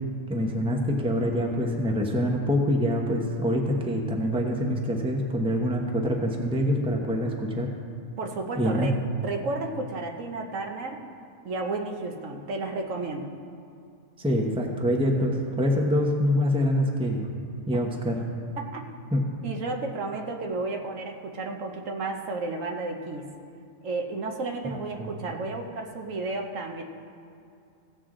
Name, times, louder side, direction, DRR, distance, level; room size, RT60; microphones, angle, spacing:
voice 1, 0.3-7.7 8.6-8.9 14.2-17.3 17.7-18.2 19.1-19.2 25.0-25.1, equal, 5° right, 1 dB, 0.8 m, -25 dB
voice 2, 8.2-8.9 9.2-11.0 11.4-13.3 18.6-18.8 19.4-23.2 23.8-26.8, right 3 dB, 70° right, 3 dB, 1.3 m, -32 dB
16.0 x 7.7 x 3.8 m, 2.5 s
omnidirectional pair, 1.4 m